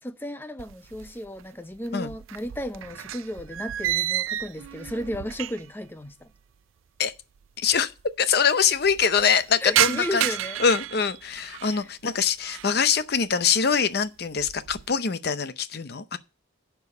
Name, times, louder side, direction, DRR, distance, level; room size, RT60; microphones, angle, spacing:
voice 1, 0.0-6.3 9.6-10.6 11.7-11.9, left 1 dB, 10° left, 0.5 m, -34 dB
sound 1, 0.6-1.5 1.7-5.8 6.1-6.2 7.1-7.2 7.4-7.5 7.7-8.2 8.6-11.8 12.3-12.8 13.2-13.6 14.0-14.9, right 13 dB, 90° right, 0.4 m, -31 dB
voice 2, 7.6-7.9 8.2-10.3 10.6-16.2, left 6 dB, 50° left, 0.6 m, -24 dB
11.0 x 4.6 x 7.0 m
head